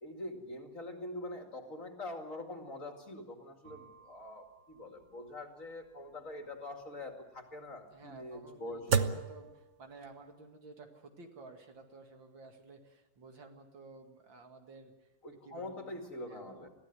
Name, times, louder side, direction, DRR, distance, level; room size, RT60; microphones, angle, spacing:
voice 1, 0.0-9.1 15.2-16.7, left 1 dB, 40° left, 4 dB, 2.7 m, -44 dB
sound 1, 3.6-10.3, right 6 dB, 50° right, 1.0 m, -38 dB
voice 2, 7.9-15.1 15.4-16.0 16.3-16.7, right 3 dB, 65° right, 4 dB, 2.9 m, -53 dB
22.0 x 15.5 x 9.8 m, 1.0 s
omnidirectional pair, 2.3 m